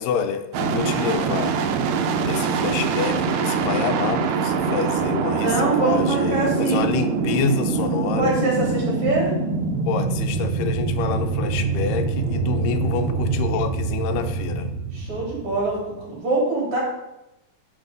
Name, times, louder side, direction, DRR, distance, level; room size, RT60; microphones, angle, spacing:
voice 1, 0.0-1.6 2.2-8.4 9.9-14.7, left 7 dB, 80° left, 8 dB, 2.3 m, -27 dB
sound 1, 0.5-16.2, right 5 dB, 80° right, 1.6 m, -24 dB
voice 2, 5.4-6.9 8.2-9.3 14.9-16.8, right 3 dB, 45° right, -4 dB, 3.9 m, -24 dB
10.5 x 4.3 x 5.2 m, 0.91 s
omnidirectional pair, 3.8 m